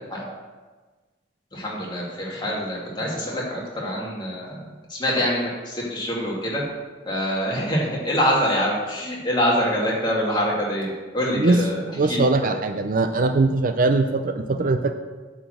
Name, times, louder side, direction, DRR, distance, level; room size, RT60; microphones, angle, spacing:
voice 1, 1.5-4.6 4.9-6.6 7.1-11.8 12.1-12.5, equal, 25° left, -4 dB, 2.3 m, -25 dB
voice 2, 12.0-15.0, right 3 dB, 45° right, 8 dB, 0.5 m, -21 dB
8.9 x 5.0 x 7.7 m, 1.3 s
head